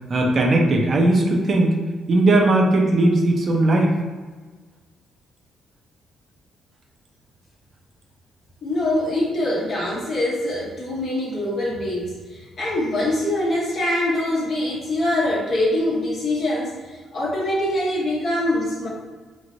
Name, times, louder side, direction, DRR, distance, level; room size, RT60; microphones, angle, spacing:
voice 1, 0.1-1.7 2.1-3.9, right 2 dB, 45° right, 1 dB, 0.5 m, -18 dB
voice 2, 8.6-18.9, left 1 dB, 50° left, -5 dB, 0.8 m, -24 dB
3.1 x 2.5 x 2.6 m, 1.4 s
cardioid pair, 90°, 0 cm